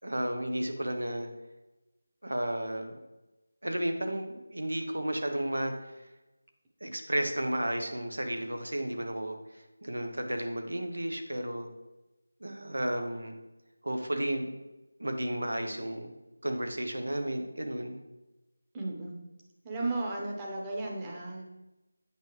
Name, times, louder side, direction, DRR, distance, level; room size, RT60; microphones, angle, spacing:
voice 1, 0.0-1.3 2.2-3.0 3.6-5.7 6.8-11.7 12.4-13.3 13.8-14.6 15.0-16.1 16.4-18.0, right 1 dB, 85° right, 5 dB, 1.1 m, -33 dB
voice 2, 18.7-19.1 19.6-21.4, right 2 dB, 15° right, -2 dB, 0.9 m, -34 dB
8.1 x 5.1 x 3.3 m, 1.0 s
figure-of-eight pair, 170°, 0 cm